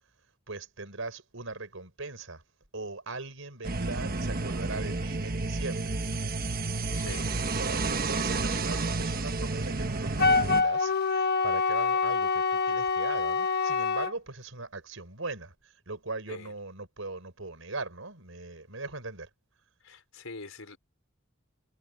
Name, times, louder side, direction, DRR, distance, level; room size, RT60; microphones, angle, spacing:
voice 1, 0.5-2.4 2.7-6.0 6.9-7.1 7.5-19.3, right 3 dB, 70° right, 5.1 m, -40 dB
sound 1, 3.6-10.6, right 3 dB, 45° right, 1.3 m, -31 dB
voice 2, 6.9-7.4 16.3-16.5 19.8-20.8, left 3 dB, 80° left, 4.4 m, -44 dB
Wind instrument woodwind instrument, 10.2-14.1, left 4 dB, 50° left, 1.4 m, -26 dB
head